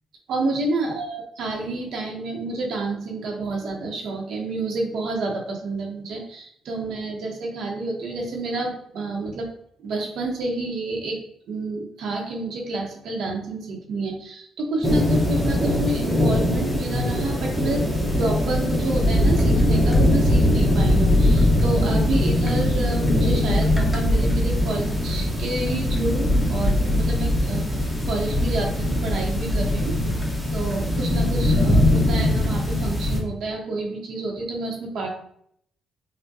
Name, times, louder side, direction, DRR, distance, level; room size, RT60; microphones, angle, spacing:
voice 1, 0.3-9.5 9.8-11.2 11.5-27.7 28.1-30.0 30.5-35.1, right 2 dB, 75° right, 0 dB, 0.9 m, -29 dB
sound 1, 14.8-33.2, left 1 dB, ahead, 1.0 m, -21 dB
5.9 x 2.2 x 2.7 m, 0.69 s
cardioid pair, 90°, 0 cm